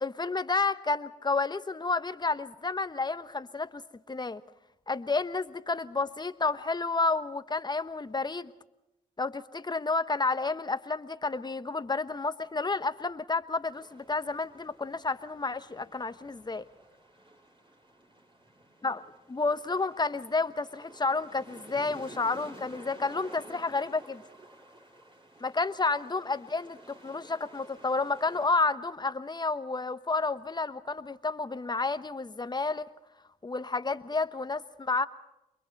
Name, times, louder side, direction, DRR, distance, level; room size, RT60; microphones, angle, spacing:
voice 1, 0.0-3.8 4.1-4.4 4.9-8.5 9.2-16.6 18.8-19.0 19.3-24.2 25.4-32.8 33.4-35.0, left 3 dB, 25° left, 12 dB, 1.1 m, -30 dB
sound 1, 13.7-28.5, right 1 dB, 30° right, 5.5 m, -52 dB
28.5 x 22.5 x 4.1 m, 0.91 s
supercardioid pair, 50°, 17 cm